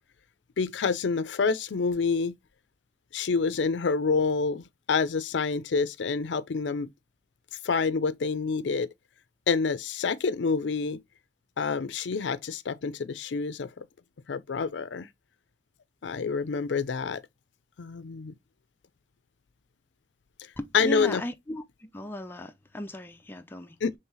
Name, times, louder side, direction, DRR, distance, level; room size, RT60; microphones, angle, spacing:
voice 1, 0.6-2.4 3.1-6.9 7.6-8.9 9.5-11.0 11.6-13.9 14.3-15.1 16.0-17.2 17.8-18.3 20.7-21.2 23.8-23.9, left 5 dB, 75° left, 0.5 m, -27 dB
voice 2, 20.6-23.8, left 1 dB, 10° left, 0.4 m, -36 dB
5.5 x 3.3 x 2.7 m
head